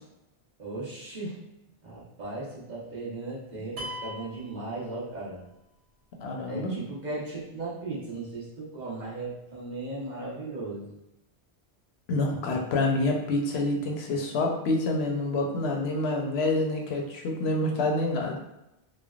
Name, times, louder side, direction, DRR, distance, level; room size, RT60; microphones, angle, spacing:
voice 1, 0.6-1.4 1.8-5.4 6.4-10.9, right 2 dB, 45° right, -7 dB, 0.9 m, -37 dB
sound 1, 3.8-5.5, left 1 dB, 85° right, 1.0 m, -40 dB
voice 2, 6.2-6.7 12.1-18.4, left 2 dB, 80° left, 1 dB, 0.8 m, -27 dB
3.2 x 2.1 x 2.3 m, 0.90 s
omnidirectional pair, 1.1 m